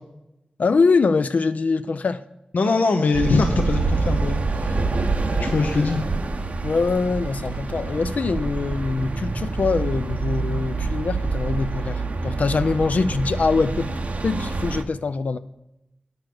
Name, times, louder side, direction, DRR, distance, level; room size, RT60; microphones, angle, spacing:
voice 1, 0.6-2.2 6.6-13.9 14.2-15.4, left 4 dB, 60° left, 0.4 m, -23 dB
voice 2, 2.5-4.8 5.3-6.0, left 3 dB, 80° left, 0.8 m, -22 dB
sound 1, 3.1-14.8, right 3 dB, 55° right, 0.8 m, -26 dB
9.7 x 6.7 x 6.1 m
wide cardioid pair, 110°, 3 cm